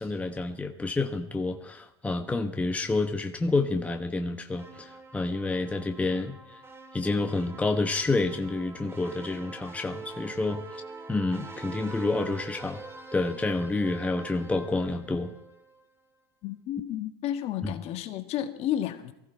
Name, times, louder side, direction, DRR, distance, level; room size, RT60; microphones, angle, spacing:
voice 1, 0.0-6.6 6.9-10.8 11.1-12.8 13.1-15.3 17.6-17.7, left 3 dB, 10° left, 5 dB, 1.0 m, -29 dB
sound 1, 4.6-15.8, right 3 dB, 15° right, 2.0 m, -44 dB
voice 2, 16.4-19.1, left 11 dB, 45° left, 8 dB, 1.6 m, -32 dB
19.5 x 15.0 x 4.6 m, 0.88 s
hypercardioid pair, 100°, 14 cm